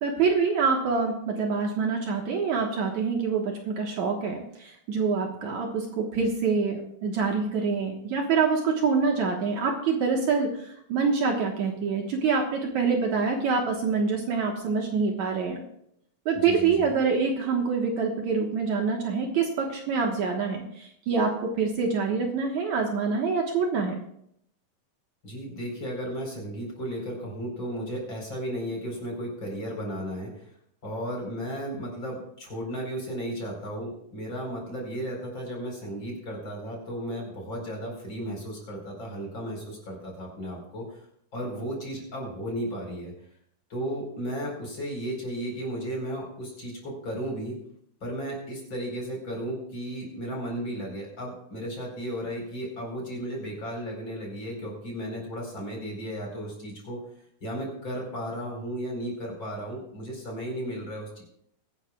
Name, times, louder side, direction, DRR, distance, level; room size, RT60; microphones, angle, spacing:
voice 1, 0.0-15.6 16.3-24.0, right 5 dB, 65° right, 1 dB, 2.5 m, -26 dB
voice 2, 16.3-16.9 25.2-30.5 30.8-41.1 41.3-43.1 43.7-47.6 48.0-57.0 57.4-61.2, equal, 35° left, -1 dB, 4.8 m, -34 dB
22.5 x 11.5 x 2.3 m, 0.72 s
omnidirectional pair, 3.9 m